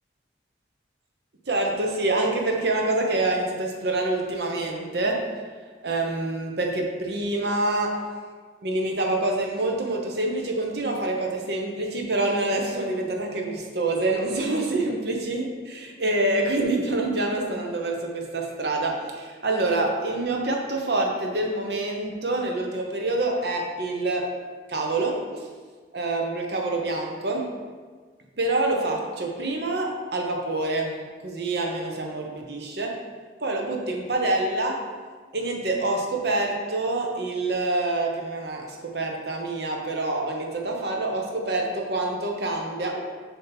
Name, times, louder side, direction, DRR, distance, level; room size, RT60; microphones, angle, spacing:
voice 1, 1.5-5.3 5.8-8.0 8.6-24.3 24.7-25.5 25.9-27.5 28.4-31.0 31.2-33.0 33.4-34.8 35.3-43.0, right 2 dB, 65° right, 1 dB, 0.9 m, -26 dB
7.1 x 2.9 x 5.8 m, 1.5 s
head